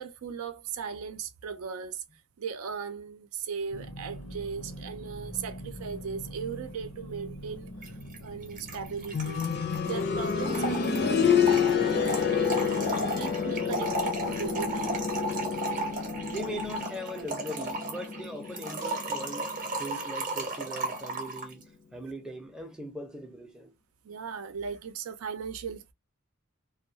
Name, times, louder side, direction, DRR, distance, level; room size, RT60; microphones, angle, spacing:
voice 1, 0.0-2.0 2.4-9.5 9.8-15.0 16.3-16.6 24.0-25.9, right 6 dB, 75° right, 0.4 m, -38 dB
sound 1, 3.7-16.8, equal, 85° left, 0.8 m, -45 dB
Trickle dribble / Fill (with liquid), 7.8-7.9 8.1-8.2 8.4-21.5, right 2 dB, 40° right, 0.7 m, -35 dB
sound 2, 9.1-19.9 20.2-20.3 21.2-21.3, left 6 dB, 50° left, 0.5 m, -29 dB
voice 2, 16.2-19.5 19.8-21.6 21.9-23.7, equal, 5° right, 0.5 m, -40 dB
2.3 x 2.2 x 2.7 m
head